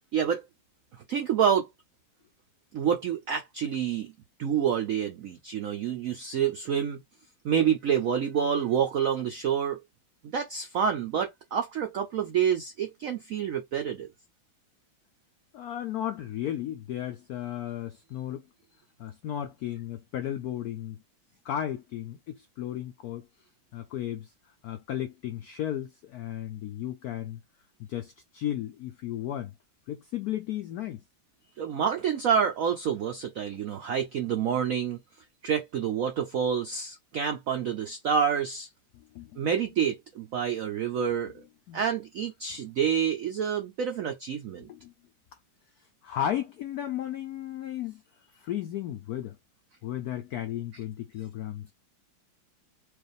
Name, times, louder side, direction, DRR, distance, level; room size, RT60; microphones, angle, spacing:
voice 1, 0.1-0.5 1.1-1.7 2.7-4.1 4.4-7.0 7.4-9.8 10.2-14.1 31.6-35.0 35.4-38.7 39.4-41.3 41.7-44.7, right 8 dB, 90° right, 0.7 m, -28 dB
voice 2, 15.5-18.5 19.0-21.0 21.4-23.3 23.7-24.3 24.6-27.4 27.8-29.5 29.9-31.0 38.9-39.5 41.7-41.8 44.7-44.9 46.0-48.0 48.4-49.4 49.8-51.7, left 11 dB, 80° left, 0.8 m, -34 dB
4.8 x 2.5 x 3.2 m
omnidirectional pair, 2.2 m